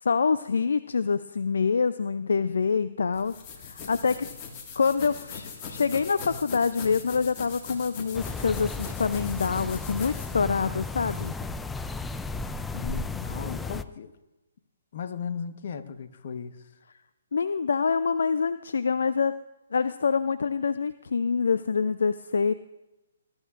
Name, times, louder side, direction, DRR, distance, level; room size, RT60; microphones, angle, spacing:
voice 1, 0.0-4.3 4.8-11.3 17.3-19.3 19.7-22.5, left 5 dB, 70° left, 14 dB, 0.4 m, -26 dB
sound 1, 3.1-11.4, left 5 dB, 30° left, 1.8 m, -41 dB
sound 2, 8.1-13.8, left 3 dB, 10° left, 0.4 m, -34 dB
voice 2, 12.7-14.1 14.9-16.7, left 6 dB, 55° left, 9 dB, 1.1 m, -36 dB
20.5 x 13.0 x 2.5 m, 0.99 s
figure-of-eight pair, 130°, 0 cm